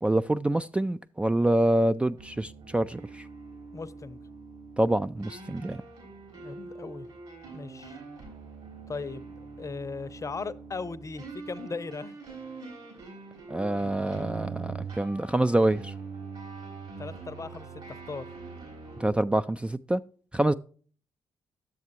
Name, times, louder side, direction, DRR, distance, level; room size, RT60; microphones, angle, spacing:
voice 1, 0.0-3.2 4.8-5.8 13.5-15.9 19.0-20.0 20.3-20.5, right 1 dB, 10° right, 0.3 m, -26 dB
sound 1, 2.2-19.1, right 4 dB, 65° right, 4.1 m, -43 dB
voice 2, 3.7-4.2 6.3-7.1 7.5-8.0 8.9-12.2 17.0-18.2, left 4 dB, 30° left, 0.7 m, -38 dB
10.5 x 7.3 x 2.9 m
hypercardioid pair, 45°, 10 cm